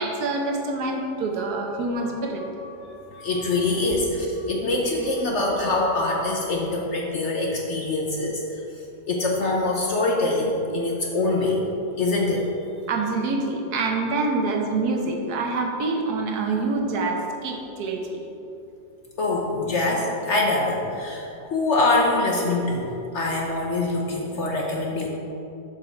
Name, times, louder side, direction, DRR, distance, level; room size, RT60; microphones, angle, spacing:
voice 1, 0.0-2.4 12.9-18.2, right 3 dB, 70° right, 2 dB, 1.4 m, -26 dB
voice 2, 2.4-8.6 9.1-11.6 12.0-12.5 19.2-22.9 23.1-25.1, left 2 dB, 50° left, -1 dB, 0.9 m, -24 dB
7.5 x 6.4 x 4.4 m, 2.8 s
omnidirectional pair, 1.8 m